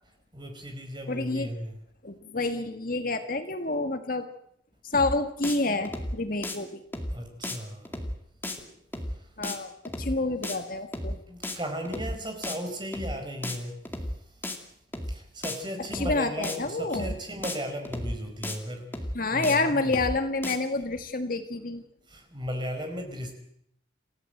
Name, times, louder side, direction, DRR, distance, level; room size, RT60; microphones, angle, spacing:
voice 1, 0.3-1.7 7.1-8.0 11.3-13.7 15.1-18.9 19.3-20.0 22.1-23.3, equal, 25° right, 4 dB, 4.9 m, -36 dB
voice 2, 1.1-1.5 2.0-4.3 4.8-6.8 9.4-9.7 10.0-11.2 15.9-17.1 19.1-21.8, left 2 dB, 45° left, 8 dB, 1.7 m, -28 dB
sound 1, 4.9-5.2 5.4-5.6 5.8-6.2 6.4-6.6 6.9-7.2 7.4-7.6 7.8-8.2 8.4-8.6 8.9-9.2 9.4-9.6 9.8-10.2 10.4-10.6 10.9-11.2 11.4-11.6 11.8-12.2 12.4-12.6 12.9-13.2 13.4-13.6 13.8-14.2 14.4-14.6 14.9-15.2 15.4-15.6 15.8-16.2 16.4-16.6 16.9-17.2 17.4-17.6 17.8-18.2 18.4-18.6 18.9-19.2 19.4-19.6 19.8-20.2 20.4-20.6, left 1 dB, 10° left, 2.3 m, -33 dB
28.0 x 16.0 x 7.9 m, 0.70 s
head